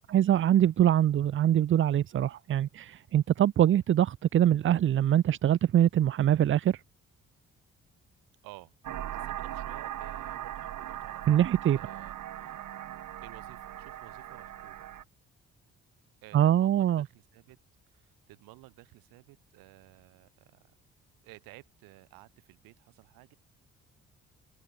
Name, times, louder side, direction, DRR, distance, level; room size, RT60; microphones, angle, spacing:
voice 1, 0.1-6.8 11.3-11.8 16.3-17.1, right 11 dB, 35° right, 0.4 m, -23 dB
sound 1, 8.8-15.0, right 12 dB, 65° right, 1.7 m, -39 dB
voice 2, 9.1-11.4 11.7-12.5 13.2-14.9 16.2-17.6 17.9-20.6 21.2-23.3, right 21 dB, 80° right, 2.3 m, -54 dB
hypercardioid pair, 50°, 34 cm